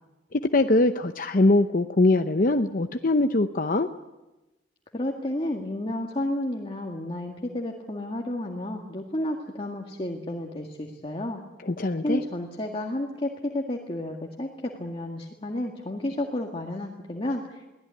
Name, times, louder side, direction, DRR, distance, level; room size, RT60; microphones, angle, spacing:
voice 1, 0.3-3.9 11.7-12.2, left 2 dB, 50° left, 7 dB, 0.8 m, -22 dB
voice 2, 4.9-11.4 12.0-17.7, left 1 dB, 30° left, 1 dB, 1.9 m, -31 dB
23.0 x 17.0 x 9.7 m, 1.1 s
head